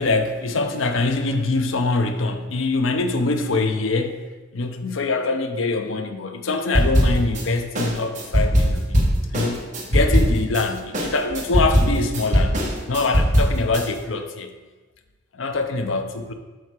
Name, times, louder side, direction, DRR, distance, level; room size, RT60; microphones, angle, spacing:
voice 1, 0.0-4.2 4.5-14.5 15.3-16.3, left 3 dB, 90° left, 7 dB, 0.6 m, -24 dB
sound 1, 6.7-7.4 7.7-10.6 10.9-13.8, equal, 40° right, 1.3 m, -19 dB
7.6 x 2.8 x 5.9 m, 1.2 s
head